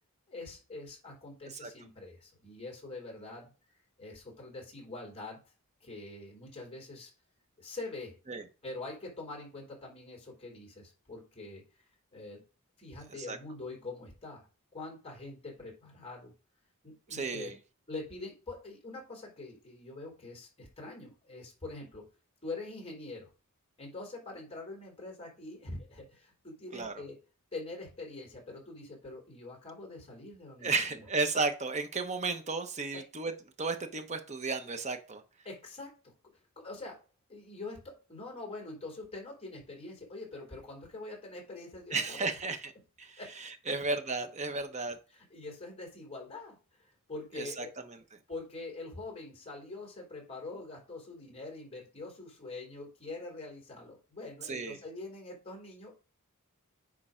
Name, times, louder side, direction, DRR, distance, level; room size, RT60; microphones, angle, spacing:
voice 1, 0.3-3.5 4.0-5.4 5.8-7.1 7.6-8.2 8.6-11.6 12.1-12.4 12.8-14.5 14.7-16.3 16.8-17.5 17.9-22.1 22.4-23.3 23.8-27.2 27.5-30.7 32.9-33.0 35.4-36.1 36.6-37.0 37.3-42.3 43.2-43.3 45.1-47.8 48.3-56.1, left 2 dB, 25° left, 0 dB, 3.8 m, -44 dB
voice 2, 17.1-17.6 26.7-26.9 30.6-33.3 33.6-35.2 41.9-42.7 43.0-45.0 47.3-48.0 54.4-54.8, right 3 dB, 30° right, 7 dB, 1.0 m, -34 dB
9.9 x 3.8 x 5.1 m, 0.34 s
head